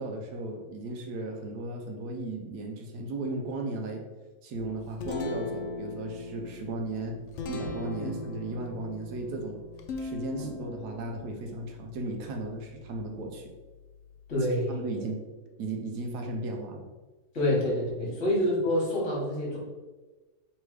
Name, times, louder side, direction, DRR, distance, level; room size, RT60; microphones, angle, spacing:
voice 1, 0.0-4.0 4.4-7.2 7.5-9.6 10.0-13.5 14.4-15.2 15.6-16.8 18.0-18.1, right 2 dB, 75° right, 2 dB, 1.2 m, -36 dB
Guitar, 4.6-14.3, left 3 dB, 75° left, 0.6 m, -40 dB
voice 2, 14.3-15.0 17.3-19.6, left 1 dB, 45° left, -3 dB, 1.7 m, -28 dB
3.4 x 3.3 x 4.6 m, 1.2 s
omnidirectional pair, 1.8 m